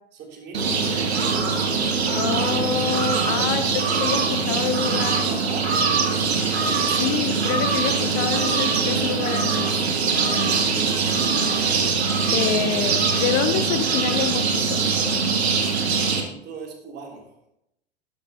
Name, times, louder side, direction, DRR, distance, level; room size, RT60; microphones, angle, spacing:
voice 1, 0.1-0.8 3.1-3.6 5.2-6.4 16.0-17.3, right 4 dB, 30° right, 0 dB, 3.4 m, -40 dB
sound 1, 0.5-16.2, right 5 dB, 65° right, 1.9 m, -22 dB
voice 2, 2.1-5.3 7.0-9.7 12.3-14.8, left 8 dB, 35° left, 9 dB, 0.9 m, -27 dB
12.5 x 12.0 x 3.0 m, 0.82 s
figure-of-eight pair, 90°, 34 cm